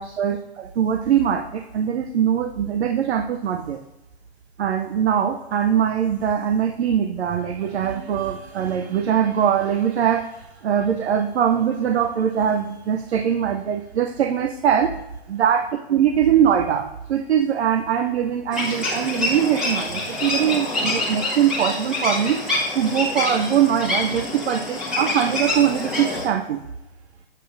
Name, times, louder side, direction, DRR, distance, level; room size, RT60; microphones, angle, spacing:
voice 1, 0.0-3.8 4.6-15.0 15.3-22.4 22.7-26.6, right 9 dB, 80° right, 7 dB, 0.7 m, -22 dB
sound 1, 18.5-26.3, left 2 dB, ahead, 1.2 m, -26 dB
8.9 x 7.6 x 2.5 m, 0.98 s
hypercardioid pair, 165°, 32 cm